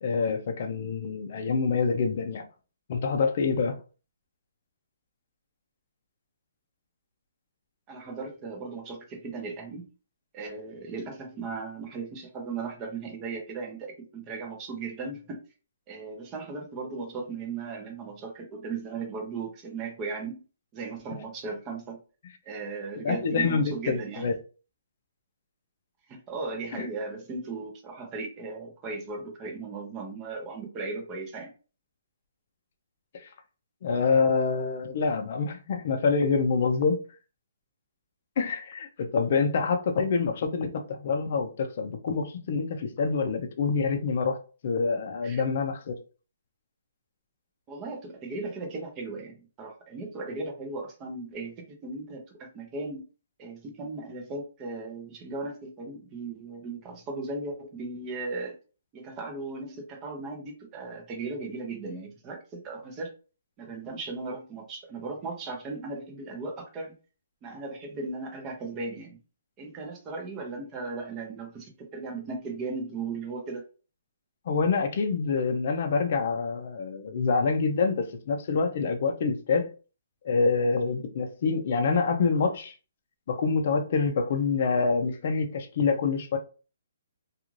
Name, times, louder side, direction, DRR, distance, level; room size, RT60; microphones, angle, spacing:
voice 1, 0.0-2.4 2.9-3.8 23.0-24.3 26.8-26.9 33.1-33.3 33.8-37.0 38.4-44.4 44.6-46.0 74.5-79.7 80.2-82.7 83.3-86.4, left 4 dB, 45° left, 0.5 m, -26 dB
voice 2, 7.9-9.9 10.3-15.4 15.9-20.4 20.7-22.0 22.4-24.3 26.1-31.5 45.2-45.4 47.7-53.0 53.4-58.6 58.9-63.1 63.6-66.9 67.4-69.2 69.6-73.6, right 3 dB, 20° right, 0.6 m, -37 dB
2.4 x 2.3 x 3.0 m
hypercardioid pair, 170°, 0 cm